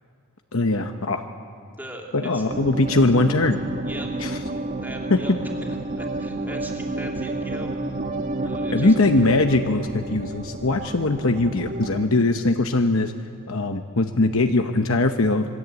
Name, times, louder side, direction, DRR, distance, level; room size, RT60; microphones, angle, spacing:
voice 1, 0.5-1.2 2.1-3.6 4.2-4.3 5.1-5.2 8.7-13.1 13.5-15.5, left 2 dB, 65° left, 6 dB, 1.0 m, -21 dB
sound 1, 2.5-12.1, right 2 dB, 35° right, 1.3 m, -30 dB
voice 2, 4.8-5.3 5.6-8.0 8.4-9.2, right 1 dB, 10° right, 0 dB, 2.9 m, -39 dB
27.0 x 21.5 x 8.3 m, 2.3 s
head